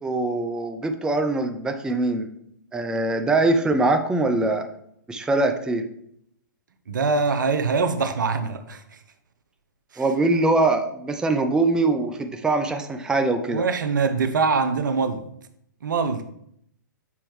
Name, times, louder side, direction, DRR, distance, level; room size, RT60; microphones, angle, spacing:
voice 1, 0.0-2.3 2.7-4.7 5.1-5.9 10.0-13.6, right 2 dB, 5° right, 0.4 m, -22 dB
voice 2, 6.9-8.8 9.9-10.0 13.5-15.2 15.8-16.2, right 4 dB, 70° right, 0.7 m, -23 dB
7.1 x 4.3 x 3.1 m
figure-of-eight pair, 115°, 11 cm